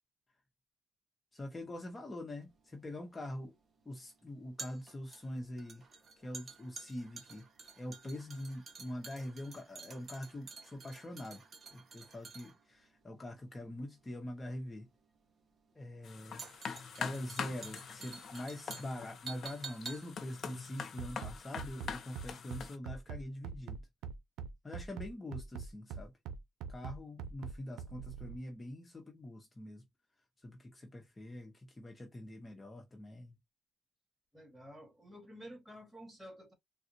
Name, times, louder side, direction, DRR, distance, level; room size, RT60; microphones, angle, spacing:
voice 1, 1.3-3.5 3.8-5.8 6.2-7.5 7.8-11.4 11.7-14.9 15.7-16.5 17.0-23.8 24.6-26.1 26.7-29.8 30.4-33.4, left 1 dB, 25° left, 0.8 m, -44 dB
sound 1, 2.4-21.7 22.0-22.1, right 4 dB, 40° right, 1.1 m, -51 dB
sound 2, 16.0-22.8, left 6 dB, 60° left, 0.7 m, -44 dB
Bass drum, 21.0-28.4, right 6 dB, 90° right, 0.5 m, -43 dB
voice 2, 34.3-36.5, equal, 10° right, 1.8 m, -51 dB
3.6 x 2.3 x 2.7 m
cardioid pair, 90°, 0 cm